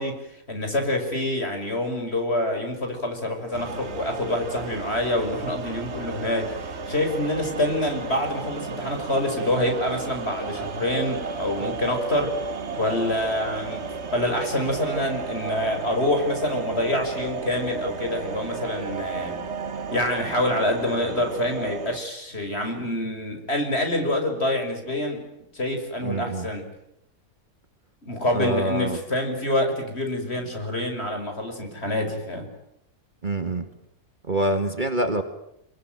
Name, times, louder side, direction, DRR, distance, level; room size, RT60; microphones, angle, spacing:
voice 1, 0.0-12.4 12.8-19.4 19.9-25.2 25.5-26.7 28.0-32.5, left 1 dB, 45° left, 5 dB, 6.3 m, -26 dB
sound 1, 3.5-22.0, right 4 dB, 50° right, 1.6 m, -33 dB
voice 2, 26.0-26.5 28.3-29.0 33.2-33.7 34.3-35.2, right 1 dB, 35° right, 8 dB, 2.2 m, -25 dB
27.5 x 23.0 x 9.2 m, 0.79 s
omnidirectional pair, 1.5 m